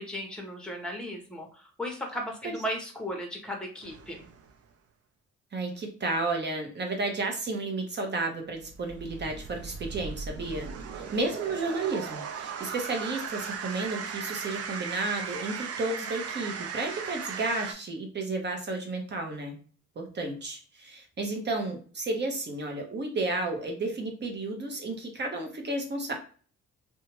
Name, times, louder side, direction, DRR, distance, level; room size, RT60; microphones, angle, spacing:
voice 1, 0.0-4.3, equal, 5° left, 2 dB, 1.0 m, -36 dB
sound 1, 3.8-4.5 8.5-17.7, right 6 dB, 55° right, 0.5 m, -37 dB
voice 2, 5.5-10.7 10.9-19.6 20.0-26.1, right 2 dB, 35° right, 3 dB, 0.9 m, -32 dB
2.7 x 2.2 x 3.0 m, 0.40 s
cardioid pair, 90°, 30 cm